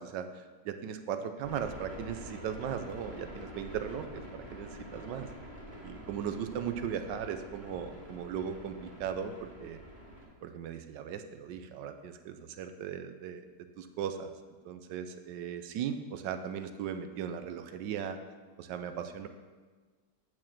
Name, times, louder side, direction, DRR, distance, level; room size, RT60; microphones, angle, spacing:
voice 1, 0.0-5.3 5.8-9.8 10.4-13.4 13.8-14.3 14.6-18.2 18.6-19.3, right 8 dB, 80° right, 8 dB, 1.3 m, -38 dB
sound 1, 1.4-10.2, equal, 25° right, 1.9 m, -47 dB
8.4 x 4.5 x 7.3 m, 1.4 s
omnidirectional pair, 1.9 m